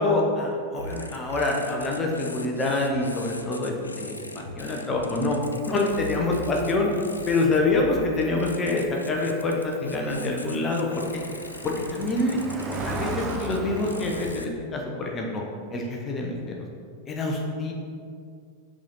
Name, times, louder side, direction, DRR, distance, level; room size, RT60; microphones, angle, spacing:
voice 1, 0.0-5.4 5.7-6.9 7.3-10.9 11.1-11.2 11.6-12.4 12.8-15.4 15.7-16.5 17.1-17.7, left 2 dB, 25° left, -1 dB, 1.0 m, -26 dB
sound 1, 0.8-14.5, left 3 dB, 80° left, 0.4 m, -39 dB
Cricket, 5.4-14.3, right 3 dB, 20° right, 0.5 m, -38 dB
6.0 x 4.3 x 4.0 m, 2.2 s
figure-of-eight pair, 90°, 0 cm